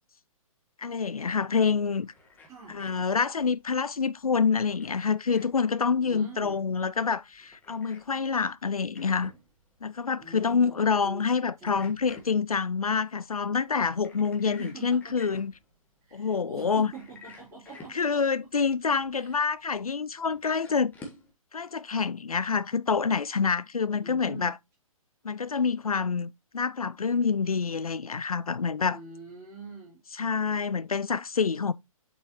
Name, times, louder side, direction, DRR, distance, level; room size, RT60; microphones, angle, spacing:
voice 1, 0.8-2.1 2.7-9.3 9.8-15.5 16.1-16.9 17.9-20.9 21.5-24.5 25.2-29.0 30.2-31.7, left 5 dB, 80° left, 0.4 m, -27 dB
sound 1, 1.8-21.3, left 2 dB, 10° left, 1.5 m, -53 dB
voice 2, 2.5-3.1 6.0-6.6 10.2-12.0 14.4-15.2 16.0-18.2 19.1-19.4 24.0-24.5 28.9-30.0, right 4 dB, 15° right, 4.0 m, -45 dB
7.3 x 5.5 x 2.9 m
figure-of-eight pair, 125°, 18 cm